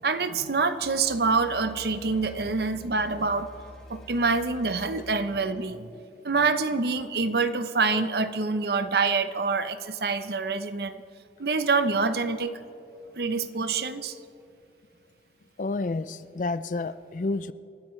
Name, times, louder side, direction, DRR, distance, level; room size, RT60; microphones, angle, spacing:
voice 1, 0.0-3.5 3.9-5.9 6.2-11.0 11.4-12.5 13.2-14.1, right 4 dB, 65° right, 0.7 m, -26 dB
sound 1, 0.8-5.2, equal, 5° left, 2.5 m, -47 dB
voice 2, 15.6-17.5, left 3 dB, 45° left, 0.4 m, -30 dB
28.5 x 13.5 x 3.2 m
head